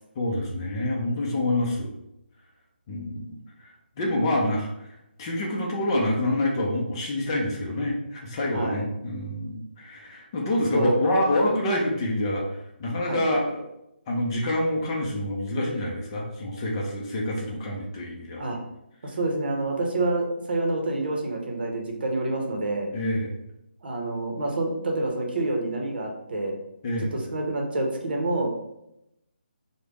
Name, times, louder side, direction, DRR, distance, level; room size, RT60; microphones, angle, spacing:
voice 1, 0.2-1.9 2.9-3.4 3.6-3.7 4.0-4.9 5.2-12.5 12.8-13.6 14.1-18.4 22.9-23.4 26.8-27.1, left 1 dB, 25° left, -1 dB, 0.5 m, -27 dB
voice 2, 8.5-8.9 10.7-10.9 13.1-13.2 18.4-18.6 19.0-22.9 23.8-26.5 27.1-28.5, right 2 dB, 60° right, 1 dB, 0.7 m, -27 dB
3.3 x 2.1 x 3.5 m, 0.84 s
figure-of-eight pair, 160°, 6 cm